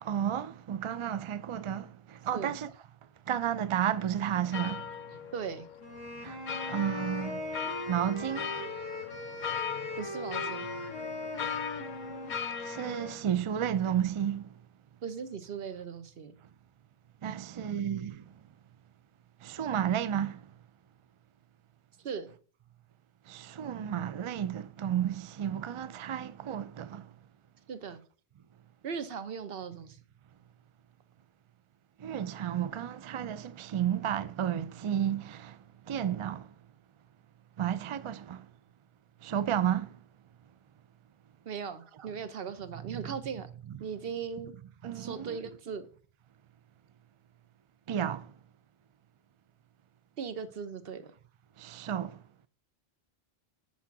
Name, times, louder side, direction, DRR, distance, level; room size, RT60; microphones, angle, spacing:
voice 1, 0.0-2.7 3.3-4.8 6.2-6.4 6.7-7.4 7.9-8.5 12.6-14.4 17.2-18.2 19.4-20.4 23.3-27.1 32.0-35.6 35.9-36.5 37.6-38.4 39.2-39.9 42.9-43.0 43.7-43.8 44.8-45.4 47.9-48.3 51.6-52.2, right 9 dB, 50° right, 0.4 m, -32 dB
sound 1, 4.5-13.2, left 7 dB, 55° left, 0.6 m, -39 dB
voice 2, 5.3-5.7 10.0-10.7 15.0-16.3 22.0-22.3 27.7-28.0 28.8-30.0 41.5-43.5 43.8-44.5 44.9-45.8 50.2-51.1, right 6 dB, 65° right, 1.0 m, -38 dB
sound 2, 5.8-13.3, left 1 dB, 20° right, 1.9 m, -40 dB
6.3 x 5.7 x 5.9 m
omnidirectional pair, 1.1 m